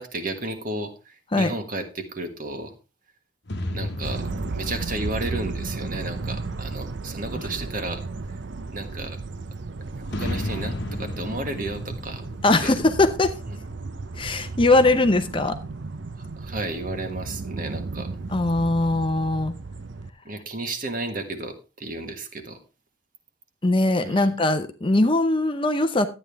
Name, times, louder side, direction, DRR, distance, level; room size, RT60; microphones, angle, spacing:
voice 1, 0.0-2.7 3.7-4.2 4.5-8.0 8.7-9.2 10.0-12.2 12.6-12.7 16.4-18.1 20.2-22.6 24.0-24.3, right 2 dB, 40° right, 7 dB, 1.5 m, -33 dB
sound 1, 3.5-7.2 10.1-13.9, left 1 dB, 55° left, 1.1 m, -34 dB
sound 2, 4.0-20.1, right 3 dB, 60° right, 0.6 m, -34 dB
voice 2, 12.4-13.3 14.2-15.6 18.3-19.5 23.6-26.1, left 2 dB, 25° left, 8 dB, 0.7 m, -21 dB
12.0 x 9.0 x 3.4 m, 0.31 s
head